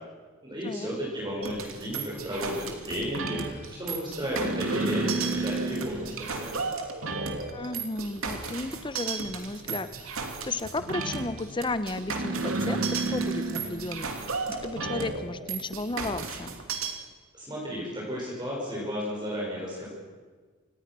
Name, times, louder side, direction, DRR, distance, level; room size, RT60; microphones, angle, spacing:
voice 1, 0.4-6.6 17.3-19.9, equal, 20° right, -4 dB, 6.1 m, -33 dB
sound 1, 1.4-16.9, right 3 dB, 80° right, 2.8 m, -32 dB
voice 2, 7.5-16.5, left 2 dB, 25° left, 13 dB, 0.8 m, -34 dB
26.0 x 19.5 x 6.2 m, 1.4 s
head